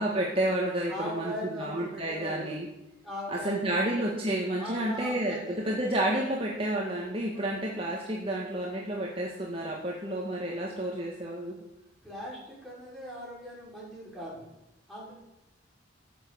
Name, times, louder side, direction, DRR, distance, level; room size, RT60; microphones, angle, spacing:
voice 1, 0.0-2.7 3.3-11.6, right 1 dB, 30° right, -3 dB, 1.9 m, -30 dB
voice 2, 0.9-2.6 3.0-3.9 4.6-5.7 7.3-7.5 12.0-14.5 14.9-15.1, equal, ahead, -7 dB, 6.1 m, -39 dB
14.5 x 8.7 x 7.0 m, 0.92 s
head